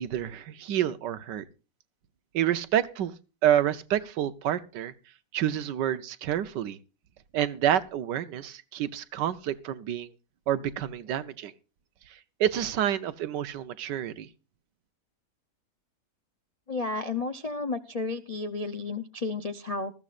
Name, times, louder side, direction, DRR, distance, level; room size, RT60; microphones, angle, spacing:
voice 1, 0.0-1.4 2.3-3.1 3.4-4.9 5.3-6.8 7.3-10.1 10.5-11.5 12.1-14.3, right 11 dB, 85° right, 13 dB, 1.5 m, -28 dB
voice 2, 16.7-19.9, left 3 dB, 50° left, 5 dB, 0.4 m, -32 dB
19.5 x 14.5 x 2.5 m, 0.32 s
omnidirectional pair, 1.8 m